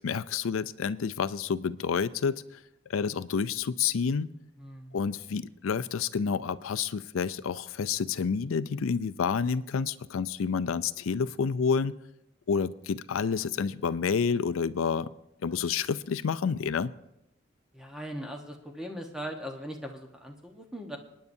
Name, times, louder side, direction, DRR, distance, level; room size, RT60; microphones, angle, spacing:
voice 1, 0.0-2.4 2.9-4.3 4.9-12.0 12.5-15.1 15.4-16.9, left 6 dB, 85° left, 14 dB, 0.4 m, -29 dB
voice 2, 4.6-5.0 17.7-21.0, equal, 5° right, 2 dB, 1.1 m, -39 dB
27.5 x 9.6 x 2.7 m, 0.88 s
head